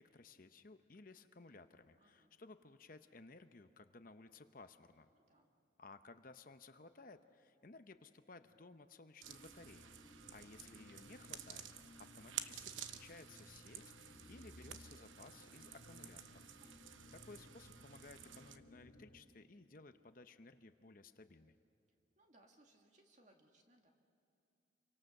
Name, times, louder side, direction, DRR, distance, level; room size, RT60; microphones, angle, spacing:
voice 1, 0.0-5.1 5.8-9.9 10.3-16.5 17.1-21.6, left 3 dB, 45° left, 9 dB, 0.8 m, -58 dB
voice 2, 2.0-2.3 5.1-5.5 10.0-10.3 16.6-17.1 22.2-23.9, right 1 dB, 40° right, 3 dB, 2.2 m, -69 dB
sound 1, 9.2-19.2, left 1 dB, 65° left, 2.5 m, -60 dB
sound 2, 9.2-18.6, right 9 dB, 85° right, 1.0 m, -52 dB
29.0 x 24.0 x 6.6 m, 2.6 s
head